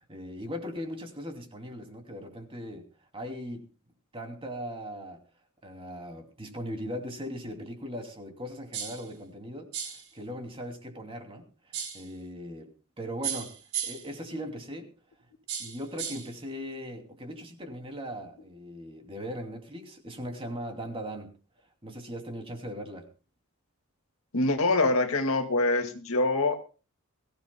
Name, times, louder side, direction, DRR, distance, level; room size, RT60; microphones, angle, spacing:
voice 1, 0.0-2.9 3.1-3.7 4.1-5.2 5.6-12.7 13.0-13.5 13.8-14.9 15.6-21.4 21.8-23.1, equal, 25° right, 2.7 m, -39 dB
sound 1, 8.7-9.1 9.7-10.1 11.7-12.1 13.2-14.1 15.5-16.3, right 8 dB, 80° right, 4.3 m, -35 dB
voice 2, 24.3-26.5, left 2 dB, 70° left, 2.0 m, -25 dB
22.5 x 16.0 x 2.2 m
head